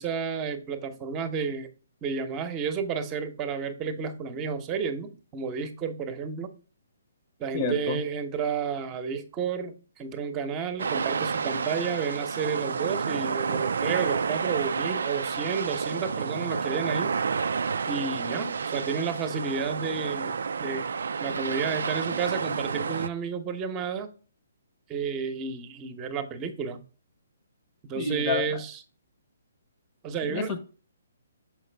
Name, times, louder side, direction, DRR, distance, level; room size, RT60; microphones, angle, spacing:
voice 1, 0.0-1.7 2.0-6.5 7.4-17.1 17.9-20.3 20.6-20.9 21.2-24.1 24.9-26.8 27.8-28.8 30.0-30.5, right 6 dB, 25° right, 0.9 m, -31 dB
voice 2, 7.5-8.0 28.0-28.6 30.2-30.6, left 4 dB, 30° left, 0.9 m, -29 dB
sound 1, 10.8-23.1, right 5 dB, 65° right, 0.3 m, -30 dB
sound 2, 14.9-15.0 15.5-16.8 17.3-17.9 18.3-18.4 18.9-19.0 20.2-20.3 20.8-22.2 22.7-23.2, right 1 dB, 90° left, 2.5 m, -45 dB
6.5 x 4.8 x 3.4 m
figure-of-eight pair, 135°, 0 cm